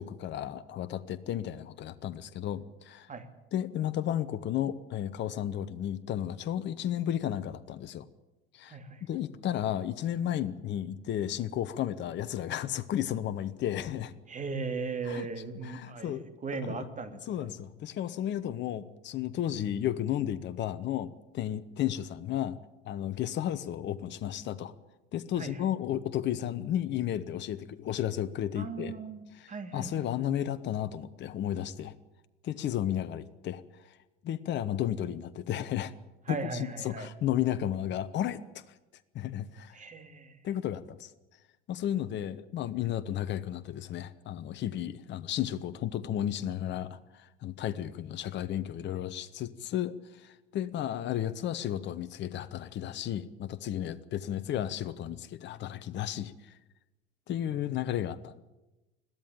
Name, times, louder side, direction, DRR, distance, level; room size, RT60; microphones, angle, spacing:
voice 1, 0.0-3.1 3.5-8.0 8.5-8.8 9.1-14.2 15.0-15.3 15.6-16.3 16.6-16.9 17.3-22.6 22.9-24.7 25.1-28.9 29.3-31.9 32.4-34.0 34.2-36.0 36.3-38.4 39.1-39.8 40.4-41.1 41.7-56.6 57.3-58.4, left 11 dB, 40° left, 13 dB, 1.0 m, -33 dB
voice 2, 8.6-9.0 14.3-17.5 25.4-25.6 28.5-30.5 36.3-37.1 39.7-40.4, right 4 dB, 25° right, 8 dB, 2.7 m, -38 dB
21.5 x 14.5 x 9.1 m, 1.0 s
figure-of-eight pair, 70°, 30 cm